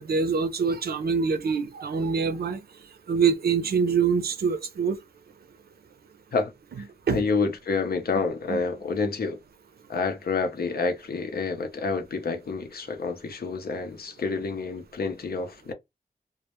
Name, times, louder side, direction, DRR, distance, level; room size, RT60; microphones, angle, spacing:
voice 1, 0.0-2.6 3.1-5.0 7.1-7.2 8.5-8.6, right 5 dB, 75° right, 0.5 m, -25 dB
voice 2, 7.1-9.4 9.9-15.7, left 4 dB, 75° left, 0.6 m, -28 dB
2.1 x 2.0 x 2.9 m
wide cardioid pair, 105°, 16 cm